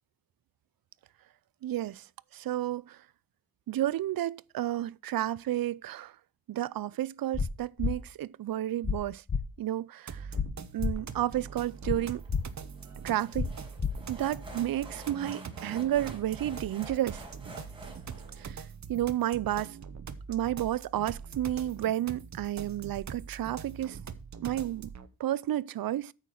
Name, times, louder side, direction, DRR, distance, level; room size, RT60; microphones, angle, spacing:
voice 1, 1.6-2.1 2.3-3.0 3.7-6.1 6.5-9.2 9.6-10.3 10.7-12.2 13.0-13.5 14.1-17.2 18.4-18.6 18.9-19.8 20.3-24.0 24.4-24.9 25.2-26.1, right 13 dB, 70° right, 0.5 m, -31 dB
sound 1, 7.3-7.5 7.8-7.9 8.8-9.0 9.3-9.4 10.3-10.5 10.8-10.9 11.8-12.0 12.3-12.4 13.3-13.5 13.8-13.9, left 5 dB, 30° left, 1.0 m, -29 dB
sound 2, 10.1-25.1, right 6 dB, 50° right, 0.9 m, -43 dB
sound 3, 11.5-18.4, right 2 dB, 15° right, 4.7 m, -48 dB
9.1 x 6.6 x 5.8 m
wide cardioid pair, 140°, 37 cm